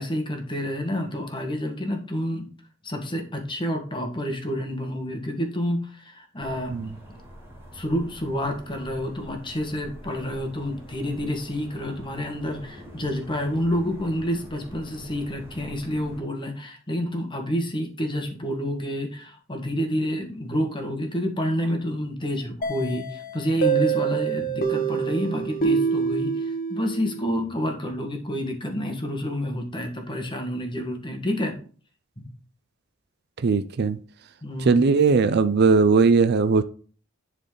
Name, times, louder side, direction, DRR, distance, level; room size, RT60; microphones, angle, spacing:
voice 1, 0.0-2.5 2.8-6.7 7.7-31.5 34.4-34.9, equal, 25° left, 4 dB, 1.5 m, -29 dB
sound 1, 6.4-16.2, equal, 10° right, 1.9 m, -45 dB
sound 2, 22.6-27.3, right 6 dB, 45° left, 1.4 m, -26 dB
voice 2, 33.4-34.0 34.7-36.6, right 4 dB, 50° right, 12 dB, 0.4 m, -19 dB
10.5 x 4.1 x 3.8 m, 0.42 s
head